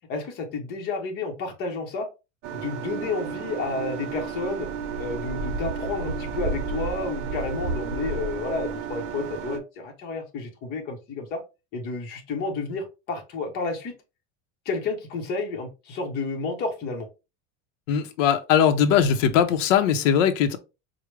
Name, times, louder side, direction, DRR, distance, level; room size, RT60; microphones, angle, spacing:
voice 1, 0.1-2.1 2.5-4.7 5.0-11.4 11.7-13.9 14.7-17.1, left 3 dB, 25° left, 0.7 m, -31 dB
sound 1, 2.4-9.6, right 5 dB, 70° right, 0.7 m, -32 dB
voice 2, 17.9-20.6, left 8 dB, 85° left, 0.7 m, -20 dB
4.7 x 2.1 x 3.1 m
cardioid pair, 180°, 37 cm